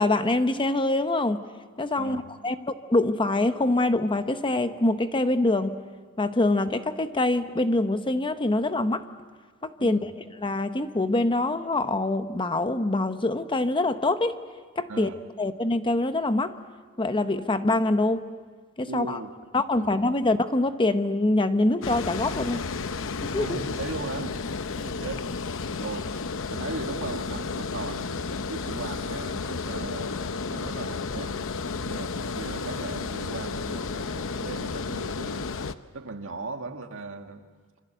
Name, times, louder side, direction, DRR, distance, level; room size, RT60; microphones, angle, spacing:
voice 1, 0.0-1.4 1.8-5.8 6.2-9.0 9.6-10.0 10.4-14.4 14.8-15.1 15.4-16.6 17.0-18.2 18.8-19.2 19.5-22.6 23.2-23.6, left 2 dB, 25° left, 10 dB, 0.9 m, -24 dB
voice 2, 9.8-10.1 14.9-15.2 18.9-19.3 19.7-20.0 23.4-24.4 24.6-25.3 25.8-26.1 26.5-31.5 31.8-35.5 35.9-37.5, right 3 dB, 65° right, 5 dB, 1.8 m, -38 dB
Water, 21.8-35.8, left 4 dB, 65° left, 0.8 m, -32 dB
26.5 x 25.0 x 8.1 m, 1.5 s
head